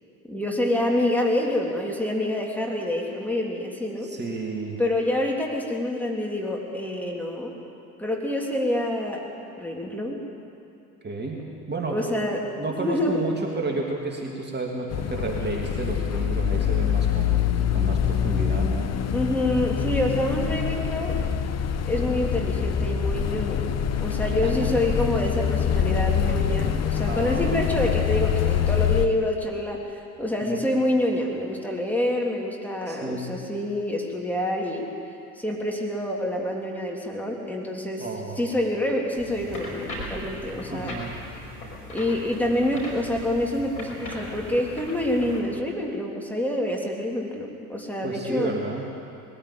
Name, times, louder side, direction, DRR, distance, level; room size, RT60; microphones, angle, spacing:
voice 1, 0.3-4.1 4.8-7.5 8.0-9.3 9.6-10.2 11.9-12.5 12.8-13.2 19.1-21.2 21.8-23.6 24.0-29.9 30.2-34.9 35.4-38.1 38.4-41.0 41.9-48.6, left 1 dB, 5° left, -1 dB, 3.5 m, -27 dB
voice 2, 4.0-4.8 11.0-11.4 11.7-12.0 12.6-18.9 24.4-24.7 26.6-27.7 30.4-30.6 32.9-33.3 38.0-38.5 40.7-41.1 48.0-48.8, right 3 dB, 20° right, -1 dB, 3.0 m, -31 dB
sound 1, 14.9-29.1, left 8 dB, 35° left, 1.1 m, -25 dB
sound 2, 39.2-45.4, left 1 dB, 80° left, 5.3 m, -38 dB
21.0 x 15.0 x 8.9 m, 2.6 s
hypercardioid pair, 70°, 45 cm